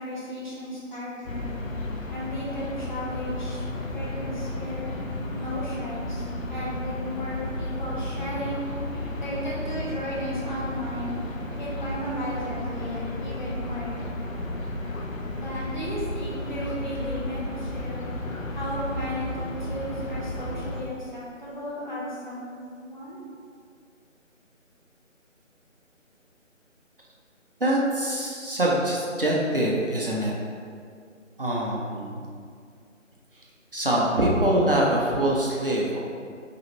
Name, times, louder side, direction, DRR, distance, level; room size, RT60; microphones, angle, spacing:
voice 1, 0.0-1.5 2.1-3.6 3.9-4.9 5.3-8.6 9.2-11.1 11.6-14.2 15.3-18.0 18.5-22.6 22.8-23.2, equal, 35° left, -7 dB, 0.9 m, -34 dB
sound 1, 1.2-20.8, left 1 dB, 90° left, 0.7 m, -33 dB
voice 2, 27.6-30.3 31.4-32.3 33.7-36.0, right 1 dB, 45° right, -4 dB, 0.6 m, -24 dB
4.8 x 2.9 x 2.9 m, 2.2 s
figure-of-eight pair, 160°, 39 cm